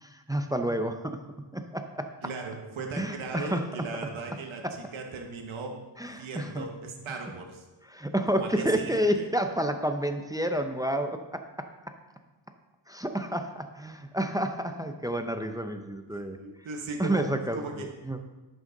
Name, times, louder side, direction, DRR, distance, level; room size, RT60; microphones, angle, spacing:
voice 1, 0.0-1.2 1.5-2.1 3.0-3.6 4.6-4.7 6.0-6.7 7.9-11.7 12.9-16.4 17.0-18.2, right 1 dB, 10° right, 6 dB, 0.7 m, -30 dB
voice 2, 2.2-7.6 8.3-9.3 16.1-17.9, right 4 dB, 85° right, 2 dB, 1.2 m, -38 dB
10.5 x 6.3 x 3.9 m, 1.2 s
cardioid pair, 70°, 46 cm